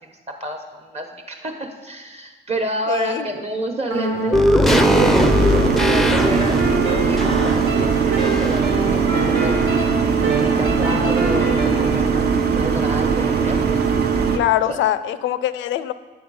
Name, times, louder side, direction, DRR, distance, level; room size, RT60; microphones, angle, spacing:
voice 1, 0.0-9.9 10.2-14.4 14.7-14.8, right 1 dB, 30° right, 3 dB, 1.1 m, -30 dB
voice 2, 2.9-3.3 14.3-15.9, left 12 dB, 75° left, 14 dB, 0.4 m, -22 dB
sound 1, 3.9-5.7 6.2-12.0, right 1 dB, 80° right, 1.5 m, -26 dB
sound 2, 4.3-8.8 9.1-9.2, left 1 dB, ahead, 0.5 m, -20 dB
sound 3, 4.7-14.4, right 6 dB, 55° right, 0.8 m, -20 dB
8.9 x 4.3 x 5.4 m, 1.4 s
cardioid pair, 90°, 20 cm